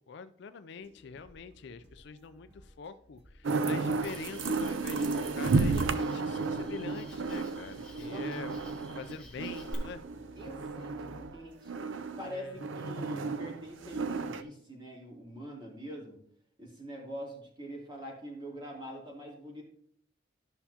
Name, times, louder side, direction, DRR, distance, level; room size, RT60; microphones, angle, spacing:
voice 1, 0.0-10.0 12.2-12.6, left 5 dB, 60° left, 11 dB, 0.4 m, -45 dB
sound 1, 0.8-11.6, equal, 60° right, 2.1 m, -57 dB
sound 2, 3.4-11.3 11.7-14.4, right 4 dB, 80° right, 0.5 m, -33 dB
Cricket, 4.0-9.7, left 2 dB, 5° left, 1.8 m, -53 dB
voice 2, 10.4-16.2 16.6-19.6, equal, 25° right, -2 dB, 2.7 m, -44 dB
13.5 x 5.6 x 2.8 m, 0.65 s
head